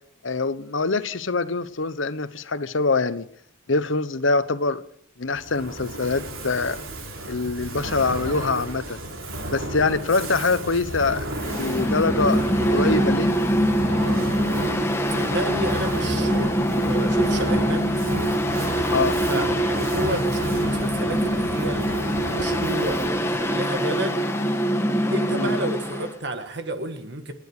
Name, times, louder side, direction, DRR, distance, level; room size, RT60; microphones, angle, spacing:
voice 1, 0.2-3.3 3.7-4.8 5.2-6.8 7.3-9.0 9.5-11.3 11.6-12.4 12.7-13.3 18.9-19.2 25.3-25.5, left 3 dB, 70° left, 1.0 m, -24 dB
Fire, 5.3-23.3, right 1 dB, 85° right, 3.4 m, -32 dB
Mechanical fan, 11.3-26.1, equal, 15° left, 1.4 m, -24 dB
voice 2, 15.1-18.4 19.2-24.2 25.1-27.3, right 1 dB, 55° right, 1.6 m, -31 dB
28.5 x 10.5 x 4.9 m
head